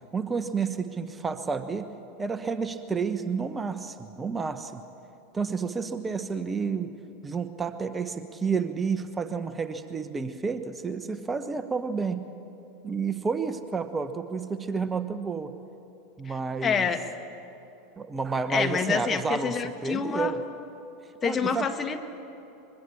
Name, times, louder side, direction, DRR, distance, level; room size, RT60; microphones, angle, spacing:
voice 1, 0.1-1.9 2.2-4.8 5.3-7.0 7.2-12.3 12.8-15.5 16.2-16.9 18.0-20.4 21.2-21.7, right 5 dB, 20° right, 10 dB, 1.1 m, -30 dB
voice 2, 16.2-17.0 18.5-20.4 21.2-22.0, left 6 dB, 30° left, 7 dB, 1.7 m, -27 dB
23.5 x 22.0 x 7.2 m, 2.9 s
hypercardioid pair, 85°, 0 cm